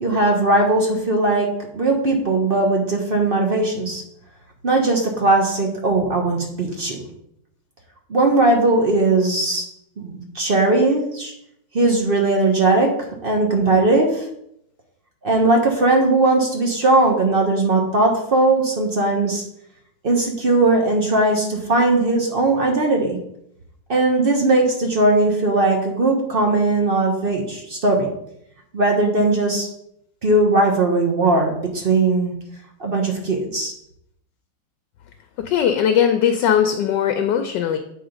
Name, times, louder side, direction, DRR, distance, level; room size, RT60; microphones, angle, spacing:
voice 1, 0.0-4.0 4.6-7.0 8.1-9.7 10.0-11.3 11.7-12.9 13.2-14.3 15.2-19.4 20.0-23.2 23.9-28.1 28.7-29.7 30.2-32.3 32.8-33.7, right 2 dB, 40° right, 1 dB, 0.8 m, -19 dB
voice 2, 35.4-37.8, left 8 dB, 75° left, 7 dB, 1.2 m, -19 dB
8.0 x 3.6 x 5.0 m, 0.75 s
omnidirectional pair, 2.1 m